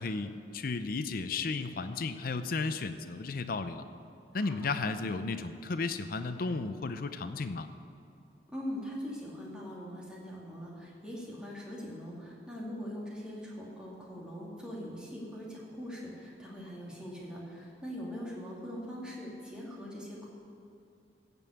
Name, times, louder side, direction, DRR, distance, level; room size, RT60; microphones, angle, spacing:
voice 1, 0.0-3.8 4.3-7.7, left 3 dB, 55° left, 9 dB, 0.6 m, -34 dB
voice 2, 4.3-4.7 8.5-20.3, equal, 5° right, -5 dB, 2.5 m, -42 dB
15.0 x 5.4 x 8.4 m, 2.6 s
head